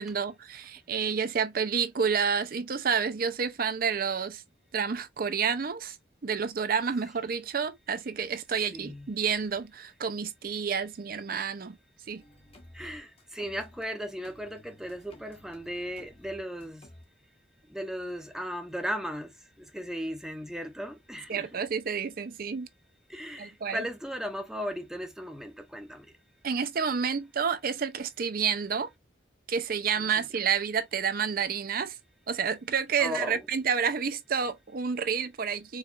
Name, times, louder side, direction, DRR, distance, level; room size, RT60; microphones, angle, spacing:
voice 1, 0.0-4.4 4.7-6.0 6.2-11.8 12.1-12.2 21.3-22.7 23.4-23.8 26.4-28.9 29.5-32.0 32.3-35.8, right 6 dB, 50° right, 0.5 m, -29 dB
voice 2, 8.7-9.1 12.7-16.9 17.7-21.6 23.1-26.1 30.0-30.2 33.0-33.4, equal, 5° right, 0.6 m, -37 dB
sound 1, 12.1-13.9 14.2-17.0, left 1 dB, 30° left, 0.9 m, -54 dB
4.7 x 2.4 x 2.4 m
head